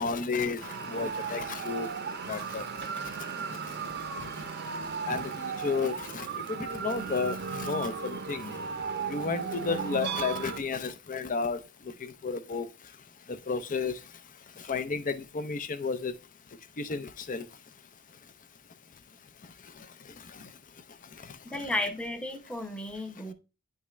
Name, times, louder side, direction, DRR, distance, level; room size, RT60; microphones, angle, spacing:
voice 1, 0.0-1.9 2.3-2.6 5.1-8.5 9.1-11.6 12.2-12.7 13.5-14.0 14.7-16.1 16.8-17.4, left 4 dB, 40° left, 0.6 m, -32 dB
sound 1, 0.6-10.6, right 6 dB, 55° right, 0.7 m, -36 dB
voice 2, 21.4-23.3, left 1 dB, 5° left, 0.8 m, -33 dB
9.4 x 3.6 x 3.1 m
head